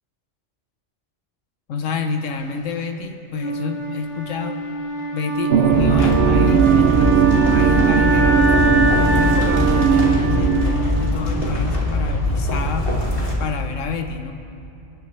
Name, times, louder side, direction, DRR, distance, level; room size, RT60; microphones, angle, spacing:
voice 1, 1.7-4.6 5.1-12.9 13.4-14.3, left 5 dB, 90° left, 6 dB, 1.2 m, -29 dB
Wind instrument woodwind instrument, 3.4-11.4, right 4 dB, 15° right, 2.7 m, -23 dB
sound 1, 5.5-10.8, right 8 dB, 65° right, 0.8 m, -19 dB
sound 2, 5.7-13.3, left 2 dB, 45° left, 2.4 m, -22 dB
27.0 x 10.5 x 3.2 m, 2.7 s
omnidirectional pair, 1.3 m